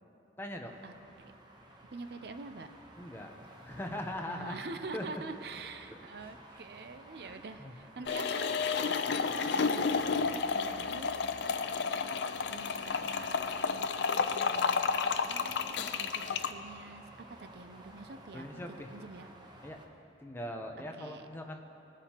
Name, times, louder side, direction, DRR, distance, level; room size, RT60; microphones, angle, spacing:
voice 1, 0.4-0.8 3.0-4.6 4.9-5.2 5.9-6.3 7.2-7.7 18.3-18.9 19.6-19.8 20.2-21.6, left 1 dB, 10° left, 3 dB, 0.7 m, -41 dB
sound 1, 0.7-19.9, right 1 dB, 25° right, 0.9 m, -54 dB
voice 2, 1.9-2.7 4.3-8.7 9.6-9.9 10.3-11.2 12.5-14.9 15.3-18.6 18.9-19.3 21.0-21.2, right 3 dB, 60° right, 9 dB, 0.5 m, -46 dB
sound 2, 8.1-16.5, left 5 dB, 70° left, 0.5 m, -31 dB
19.5 x 9.9 x 2.9 m, 2.8 s
head